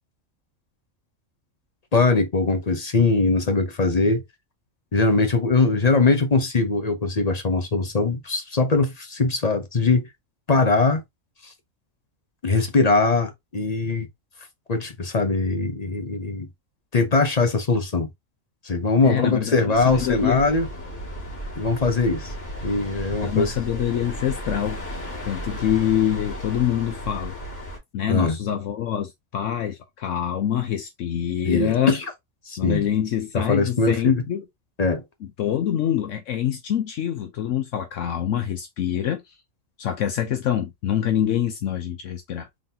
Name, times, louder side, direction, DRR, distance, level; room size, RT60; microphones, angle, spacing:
voice 1, 1.9-4.2 4.9-10.1 10.5-11.0 11.4-11.5 12.4-14.1 14.7-16.5 16.9-18.1 18.6-20.7 21.6-22.3 22.6-23.5 28.1-28.4 31.4-32.0 32.5-32.8 33.3-34.2 34.8-35.0, left 3 dB, 40° left, 0.7 m, -21 dB
voice 2, 19.0-20.4 23.2-27.3 27.9-32.0 32.6-34.4 35.4-39.2 39.8-42.5, left 10 dB, 70° left, 1.0 m, -25 dB
sound 1, 19.7-27.8, equal, 15° left, 2.0 m, -34 dB
3.9 x 3.6 x 2.7 m
omnidirectional pair, 1.4 m